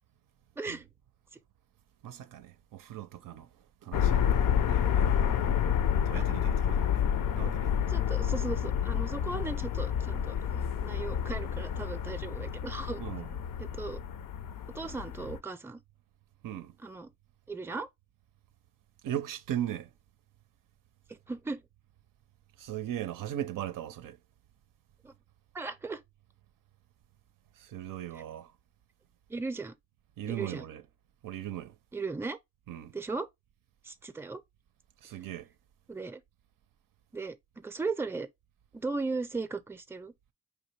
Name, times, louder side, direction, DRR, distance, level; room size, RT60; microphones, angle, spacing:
voice 1, 0.6-0.9 6.1-6.3 7.9-13.0 13.6-14.0 14.7-15.8 16.8-17.1 17.5-17.9 21.1-21.6 25.0-25.1 25.5-26.0 29.3-29.7 30.3-30.6 31.9-32.4 32.9-33.3 33.8-34.4 35.9-36.2 37.1-38.3 38.7-40.1, right 3 dB, 10° right, 0.4 m, -37 dB
voice 2, 2.0-5.1 5.9-7.0 7.3-7.8 13.0-13.4 16.4-16.8 19.0-19.9 22.6-24.2 27.5-28.5 30.2-30.8 31.2-31.8 32.7-33.0 35.0-35.5, right 11 dB, 90° right, 0.5 m, -38 dB
sound 1, 3.9-15.4, left 8 dB, 85° left, 0.5 m, -29 dB
4.7 x 3.0 x 3.1 m
cardioid pair, 100°, 32 cm